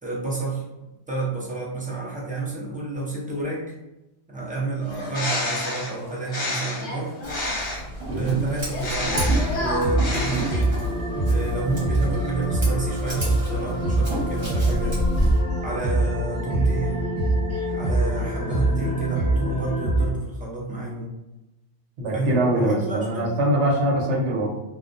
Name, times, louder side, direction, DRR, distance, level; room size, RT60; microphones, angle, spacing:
voice 1, 0.0-0.6 1.1-3.7 4.3-7.1 8.1-10.8 11.3-15.0 15.6-17.1 17.7-21.2 22.1-23.3, right 3 dB, 10° right, -6 dB, 0.3 m, -30 dB
Bird, 4.9-8.0 8.7-10.9, left 1 dB, 75° left, 1.0 m, -29 dB
Scissors, 7.2-15.4, equal, 35° right, 1.1 m, -31 dB
sound 1, 9.0-20.0, right 1 dB, 20° left, 0.7 m, -24 dB
voice 2, 22.0-24.5, right 1 dB, 80° right, -3 dB, 1.0 m, -23 dB
2.3 x 2.1 x 2.5 m, 0.99 s
omnidirectional pair, 1.2 m